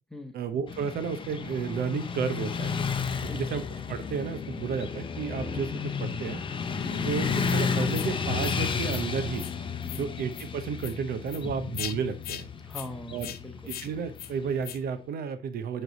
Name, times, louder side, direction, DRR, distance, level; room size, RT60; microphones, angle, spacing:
voice 1, 0.3-2.8 3.3-6.4 7.0-9.5 10.0-12.5 13.1-13.4 13.7-15.8, right 6 dB, 65° right, 10 dB, 0.7 m, -32 dB
Motorcycle / Traffic noise roadway noise, 0.7-14.8, left 5 dB, 30° left, 0.7 m, -32 dB
voice 2, 3.2-3.6 6.7-7.0 9.8-10.1 12.6-13.7, left 1 dB, 5° left, 5 dB, 1.1 m, -42 dB
sound 1, 7.4-7.6 7.9-8.1 8.4-8.6 8.9-9.0 9.3-9.5 9.8-10.0 10.3-10.5 10.8-10.9 11.3-11.4 11.7-11.9 12.2-12.4 12.7-12.9 13.2-13.4 13.7-13.9 14.2-14.3 14.6-14.8, left 11 dB, 65° left, 0.6 m, -39 dB
7.6 x 3.3 x 3.9 m, 0.33 s
cardioid pair, 110°, 17 cm